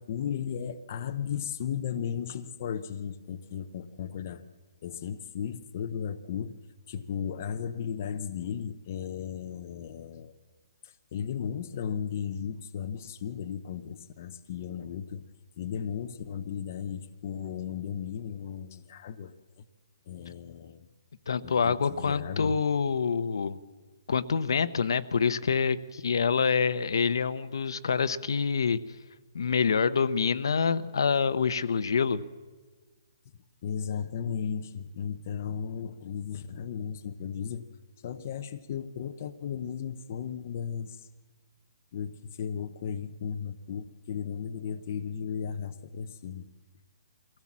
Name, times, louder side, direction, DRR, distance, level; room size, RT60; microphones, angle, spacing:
voice 1, 0.0-4.4 4.8-6.6 6.9-10.3 10.8-15.2 15.6-19.3 20.1-20.9 21.4-22.6 33.6-37.7 38.0-41.1 41.9-46.5, left 8 dB, 30° left, 7 dB, 0.7 m, -35 dB
voice 2, 21.3-23.6 24.1-28.8 29.3-32.2, left 6 dB, 60° left, 12 dB, 0.8 m, -26 dB
23.5 x 16.5 x 7.3 m, 1.3 s
hypercardioid pair, 180°, 3 cm